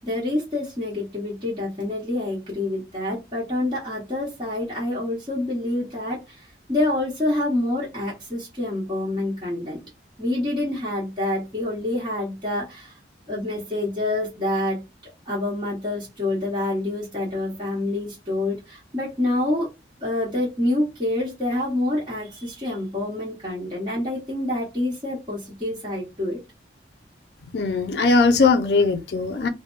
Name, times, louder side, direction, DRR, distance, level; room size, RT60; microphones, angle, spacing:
voice 1, 0.0-9.8 10.2-13.0 13.3-19.7 20.0-26.4, left 1 dB, 25° right, 1.1 m, -27 dB
voice 2, 27.5-29.5, left 4 dB, 65° left, 0.5 m, -19 dB
3.2 x 2.1 x 2.4 m
head